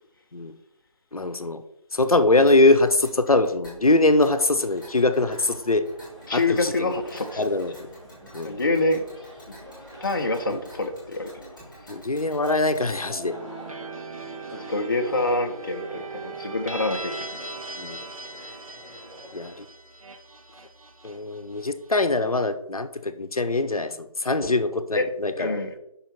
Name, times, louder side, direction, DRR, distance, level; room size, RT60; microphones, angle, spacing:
voice 1, 1.1-1.6 1.9-5.8 6.3-6.9 7.4-7.7 8.3-8.6 10.5-10.6 11.9-13.4 17.8-18.0 19.3-19.6 21.0-25.5, left 2 dB, 80° left, 0.8 m, -22 dB
Tick, 2.5-13.0, equal, ahead, 2.1 m, -50 dB
sound 1, 4.1-19.6, equal, 55° right, 2.7 m, -47 dB
voice 2, 6.3-7.4 8.4-9.0 9.5-9.6 10.0-11.4 14.5-17.4 24.9-25.1 25.4-25.7, left 2 dB, 35° left, 0.6 m, -26 dB
sound 2, 13.2-22.1, right 3 dB, 75° right, 1.2 m, -39 dB
5.5 x 4.2 x 6.0 m
figure-of-eight pair, 160°, 18 cm